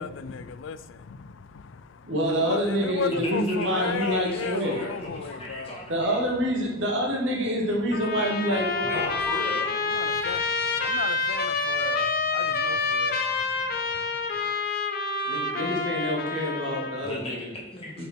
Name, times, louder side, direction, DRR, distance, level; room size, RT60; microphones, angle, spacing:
voice 1, 0.0-5.8 9.0-9.1 9.9-14.1, left 6 dB, 85° left, 0.4 m, -36 dB
voice 2, 2.0-4.8 5.9-9.0 15.3-17.4 18.0-18.1, equal, 75° right, 2.2 m, -27 dB
voice 3, 3.1-6.2 8.8-9.8 17.0-18.0, left 1 dB, 30° left, 2.3 m, -36 dB
Trumpet, 7.9-17.1, left 4 dB, 55° left, 0.9 m, -28 dB
7.1 x 5.2 x 4.5 m
head